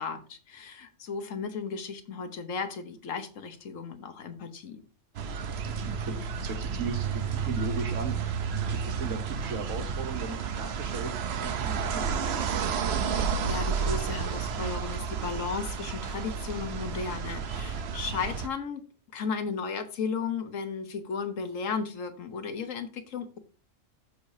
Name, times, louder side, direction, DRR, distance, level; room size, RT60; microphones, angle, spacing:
voice 1, 0.0-4.8 13.1-18.8 19.1-23.4, left 5 dB, 80° left, 8 dB, 1.4 m, -35 dB
sound 1, 5.1-18.5, right 6 dB, 60° right, 0.9 m, -31 dB
voice 2, 5.6-12.7, right 3 dB, 80° right, 5 dB, 1.6 m, -38 dB
14.5 x 4.9 x 2.7 m, 0.37 s
omnidirectional pair, 1.3 m